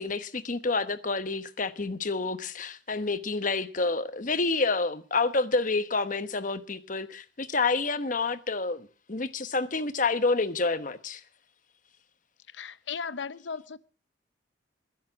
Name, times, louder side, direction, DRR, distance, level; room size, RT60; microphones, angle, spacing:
voice 1, 0.0-11.2, left 3 dB, 40° left, 1.1 m, -28 dB
voice 2, 12.5-13.8, left 6 dB, 70° left, 0.8 m, -36 dB
20.5 x 11.0 x 5.9 m
head